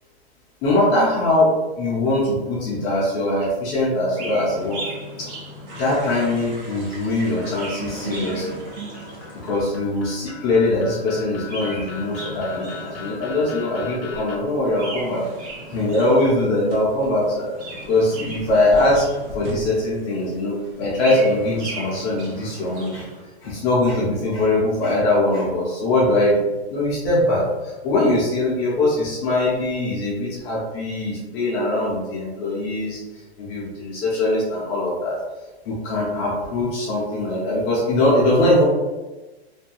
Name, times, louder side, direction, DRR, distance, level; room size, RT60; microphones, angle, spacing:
voice 1, 0.6-4.9 5.2-5.3 5.8-8.6 9.4-15.2 15.7-17.5 17.9-19.1 19.3-23.1 23.4-33.0 33.4-35.2 35.7-38.6, left 1 dB, 20° left, -6 dB, 0.4 m, -21 dB
Chirp tweet, 4.1-6.6 7.3-9.7 11.2-13.4 14.7-16.6 17.4-19.6 20.7-23.2, right 2 dB, 80° right, 1.1 m, -37 dB
sound 1, 5.7-21.8, right 2 dB, 45° right, 0.8 m, -41 dB
sound 2, 7.9-14.4, left 6 dB, 65° left, 0.7 m, -40 dB
2.6 x 2.2 x 2.9 m, 1.2 s
hypercardioid pair, 150°, 33 cm